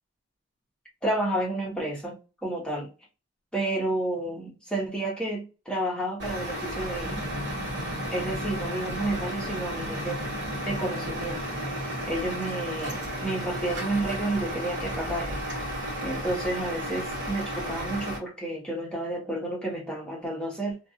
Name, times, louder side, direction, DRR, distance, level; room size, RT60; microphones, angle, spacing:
voice 1, 1.0-2.9 3.5-7.2 8.1-10.2 10.6-11.4 12.1-15.4 16.0-20.8, right 1 dB, 5° left, 1.1 m, -31 dB
Truck, 6.2-18.2, equal, 60° right, 1.2 m, -33 dB
sound 1, 7.0-15.7, equal, 35° right, 1.0 m, -41 dB
2.5 x 2.5 x 2.8 m
head